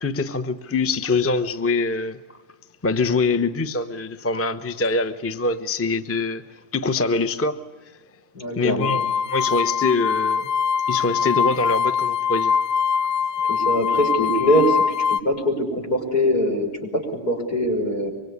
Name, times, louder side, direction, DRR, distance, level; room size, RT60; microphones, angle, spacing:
voice 1, 0.0-2.2 2.8-6.4 6.7-7.6 8.5-10.5 10.9-12.6, left 3 dB, 10° left, 0.7 m, -24 dB
voice 2, 8.3-8.9 13.5-14.8 15.1-18.1, equal, 75° left, 6.1 m, -22 dB
sound 1, 8.8-15.2, left 6 dB, 55° left, 1.4 m, -22 dB
25.0 x 24.5 x 9.7 m
omnidirectional pair, 1.7 m